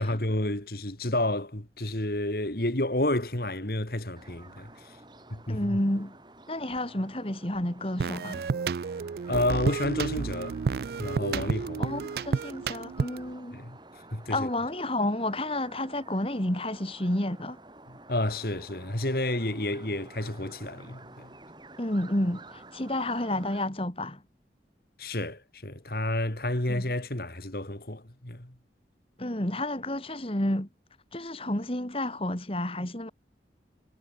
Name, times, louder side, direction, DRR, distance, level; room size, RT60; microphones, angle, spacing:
voice 1, 0.0-5.0 5.3-5.8 9.3-10.6 11.0-11.9 13.5-13.8 14.1-14.5 17.9-21.3 25.0-28.5, left 1 dB, 55° left, 2.8 m, -30 dB
sound 1, 4.2-23.6, right 2 dB, 25° right, 6.3 m, -51 dB
voice 2, 5.5-6.1 6.5-8.4 11.8-13.6 14.3-17.6 21.8-24.2 26.7-26.8 29.2-30.7 31.1-33.1, left 1 dB, 30° left, 2.8 m, -30 dB
sound 2, 8.0-13.3, right 5 dB, 55° right, 0.3 m, -31 dB
head